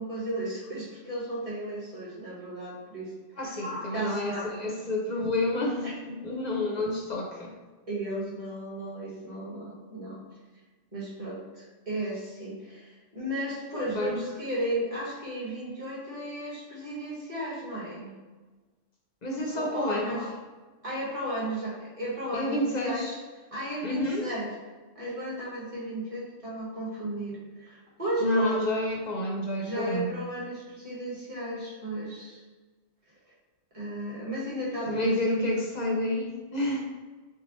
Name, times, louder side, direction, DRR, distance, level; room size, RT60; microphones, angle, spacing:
voice 1, 0.0-3.1 3.4-4.5 5.8-5.9 7.9-10.2 10.9-18.1 19.5-20.3 20.8-23.1 23.5-24.5 24.9-28.6 29.6-32.4 33.7-35.6, right 1 dB, 25° right, -7 dB, 1.6 m, -34 dB
voice 2, 3.4-7.5 13.9-14.2 19.2-20.2 22.3-23.1 23.8-24.3 28.2-30.1 34.9-36.8, left 1 dB, 40° left, -1 dB, 0.7 m, -29 dB
5.9 x 2.4 x 3.1 m, 1.3 s
omnidirectional pair, 1.3 m